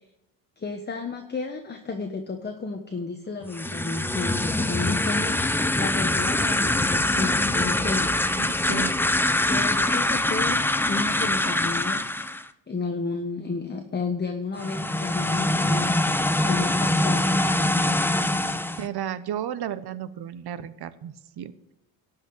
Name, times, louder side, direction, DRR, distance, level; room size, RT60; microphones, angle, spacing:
voice 1, 0.6-8.9 9.5-12.1 12.3-17.4, left 4 dB, 20° left, 4 dB, 1.2 m, -32 dB
sound 1, 3.4-12.5 14.5-18.9, left 1 dB, 5° left, 0.6 m, -24 dB
voice 2, 8.3-8.9 18.8-21.7, right 10 dB, 50° right, 14 dB, 1.0 m, -33 dB
12.5 x 5.9 x 8.8 m, 0.87 s
cardioid pair, 100°, 49 cm